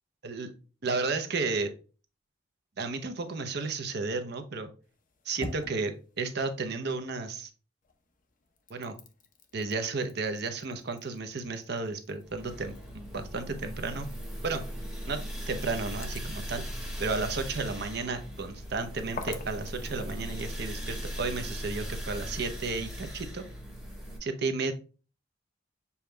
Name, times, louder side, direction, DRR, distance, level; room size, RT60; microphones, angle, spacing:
voice 1, 0.8-1.7 2.8-4.7 5.3-7.5 8.7-8.9 9.5-14.1 14.4-14.6 15.1-15.2 15.5-16.6 17.0-23.4 24.2-24.7, right 3 dB, 60° right, 7 dB, 0.7 m, -33 dB
sound 1, 4.8-7.5 7.8-21.1, left 3 dB, 45° left, 0.7 m, -49 dB
sound 2, 12.2-24.2, equal, ahead, 1.3 m, -38 dB
6.9 x 2.3 x 3.2 m, 0.36 s
head